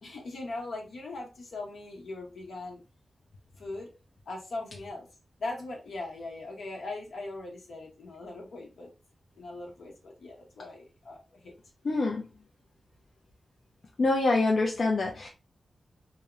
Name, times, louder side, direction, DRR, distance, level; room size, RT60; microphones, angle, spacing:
voice 1, 0.0-2.8 3.6-3.9 4.3-5.1 5.4-8.9 9.4-11.2 11.4-11.5, left 2 dB, 85° left, 0.9 m, -40 dB
voice 2, 11.8-12.3 14.0-15.3, left 3 dB, 65° left, 0.4 m, -25 dB
2.8 x 2.0 x 2.4 m
wide cardioid pair, 85°, 0 cm